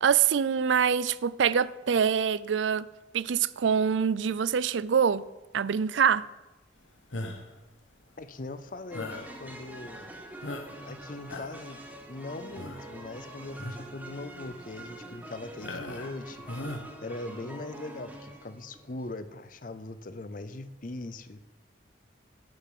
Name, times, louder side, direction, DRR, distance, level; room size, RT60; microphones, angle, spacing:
voice 1, 0.0-2.9 3.1-5.3 5.5-6.2, right 7 dB, 75° right, 0.4 m, -25 dB
sound 1, 7.1-7.6 8.9-9.3 9.9-10.0 10.4-10.9 11.2-11.7 12.6-12.9 13.5-13.9 14.4-14.5 15.6-16.2 16.5-16.8, left 2 dB, 85° left, 1.4 m, -38 dB
voice 2, 8.2-10.1 10.9-16.4 17.0-21.5, left 2 dB, 45° left, 0.6 m, -40 dB
sound 2, 8.9-19.1, right 1 dB, 10° right, 1.3 m, -45 dB
11.5 x 6.8 x 7.6 m
head